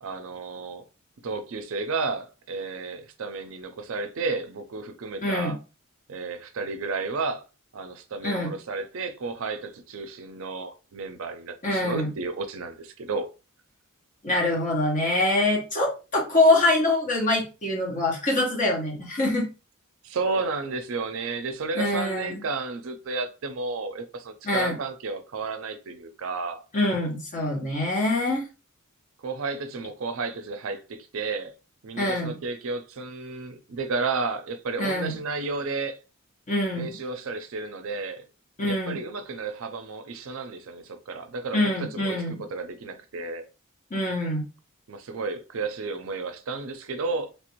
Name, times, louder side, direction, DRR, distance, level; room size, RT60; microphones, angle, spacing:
voice 1, 0.0-0.8 1.2-5.6 6.1-7.4 7.7-13.3 20.0-26.6 29.2-31.5 31.8-36.0 36.7-38.2 38.7-43.4 44.9-47.3, right 4 dB, 60° right, 0.5 m, -32 dB
voice 2, 5.2-5.5 8.2-8.5 11.6-12.1 14.2-19.5 21.8-22.4 24.4-24.8 26.7-28.5 32.0-32.4 34.8-35.2 36.5-37.0 38.6-39.0 41.5-42.4 43.9-44.4, left 2 dB, 35° left, 1.0 m, -24 dB
3.2 x 2.5 x 2.9 m
head